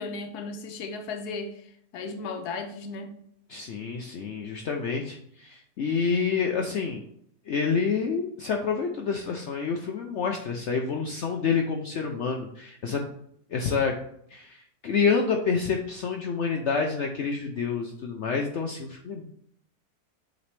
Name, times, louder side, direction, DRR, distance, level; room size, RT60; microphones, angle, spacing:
voice 1, 0.0-1.5 1.9-3.1, left 3 dB, 80° left, 1.3 m, -35 dB
voice 2, 3.5-7.1 7.5-13.0 13.5-13.9 14.3-19.2, left 5 dB, 65° left, 0.8 m, -28 dB
8.3 x 3.9 x 3.2 m
omnidirectional pair, 1.7 m